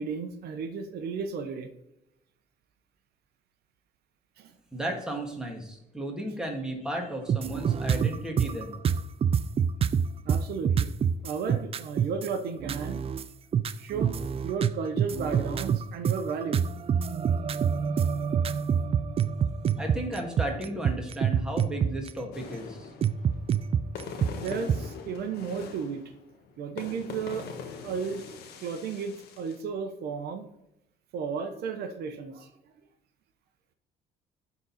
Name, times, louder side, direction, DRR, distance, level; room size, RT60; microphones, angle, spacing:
voice 1, 0.0-1.7 4.4-4.5 10.2-10.9 11.2-13.0 13.8-14.1 14.4-16.6 17.8-17.9 24.3-26.0 26.6-27.5 27.8-30.5 31.1-32.5, right 5 dB, 70° right, 7 dB, 1.0 m, -34 dB
voice 2, 4.7-8.8 19.8-22.9, right 1 dB, 5° right, 0 dB, 2.1 m, -34 dB
sound 1, 7.3-12.3 12.6-13.2 13.5-22.1 23.0-24.8, right 7 dB, 35° right, 0.4 m, -26 dB
sound 2, 22.3-29.6, left 5 dB, 75° left, 1.4 m, -43 dB
12.0 x 4.1 x 4.2 m, 0.86 s
cardioid pair, 110°, 17 cm